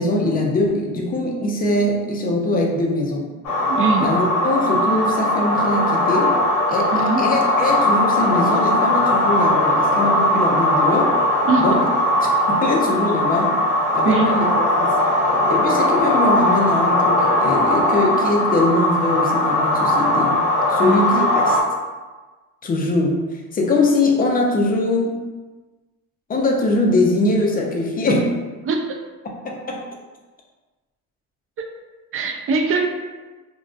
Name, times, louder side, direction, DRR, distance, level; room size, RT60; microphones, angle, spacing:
voice 1, 0.0-3.3 4.0-6.4 6.7-11.2 11.6-11.8 12.5-13.6 13.9-14.5 14.8-15.0 15.5-20.4 20.7-21.6 22.6-25.2 26.3-28.4 29.4-29.8, left 2 dB, 30° left, 0 dB, 0.5 m, -21 dB
sound 1, 3.4-21.6, left 1 dB, 65° left, 0.8 m, -19 dB
voice 2, 3.7-4.1 6.9-7.3 11.4-11.6 14.0-14.4 20.8-21.1 28.7-29.0 31.6-31.7 32.1-32.9, right 4 dB, 45° right, 3 dB, 0.4 m, -21 dB
2.5 x 2.1 x 2.4 m, 1.3 s
cardioid pair, 100°, 31 cm